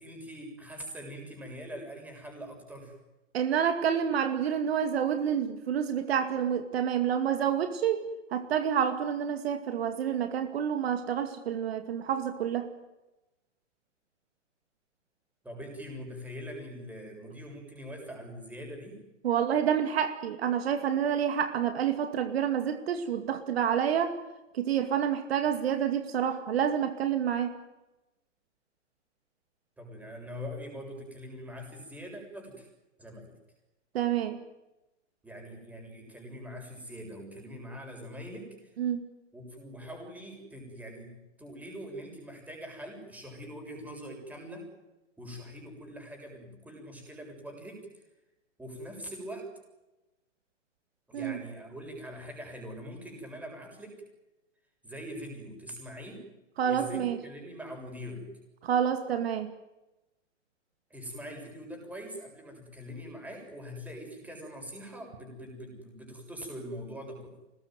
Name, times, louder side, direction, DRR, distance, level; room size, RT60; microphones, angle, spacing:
voice 1, 0.0-3.0 15.4-19.0 29.8-32.7 33.0-33.3 35.2-38.8 39.3-44.7 45.2-48.0 48.6-49.5 51.1-54.0 54.8-56.3 56.6-58.3 60.9-67.3, equal, 5° right, 2 dB, 7.2 m, -43 dB
voice 2, 3.3-12.7 19.2-24.2 24.5-27.5 33.9-34.4 38.8-39.0 51.1-51.4 56.6-57.2 58.6-59.5, right 8 dB, 55° right, 7 dB, 2.4 m, -28 dB
24.5 x 20.5 x 9.4 m, 1.0 s
hypercardioid pair, 145°, 37 cm